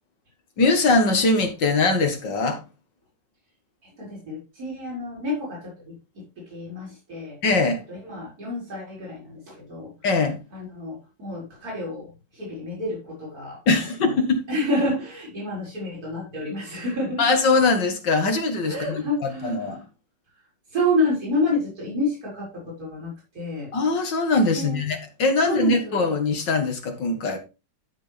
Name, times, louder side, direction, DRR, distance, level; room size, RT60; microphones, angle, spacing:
voice 1, 0.6-2.6 7.4-7.8 10.0-10.4 13.7-14.4 17.2-19.8 23.7-27.4, left 3 dB, 90° left, 5 dB, 2.5 m, -22 dB
voice 2, 4.0-7.4 7.9-9.9 10.5-13.6 14.0-14.1 14.5-17.2 18.7-19.8 20.7-23.7 24.5-24.8 25.4-26.1, left 1 dB, 55° right, -4 dB, 5.4 m, -29 dB
12.5 x 6.2 x 3.5 m, 0.28 s
omnidirectional pair, 1.9 m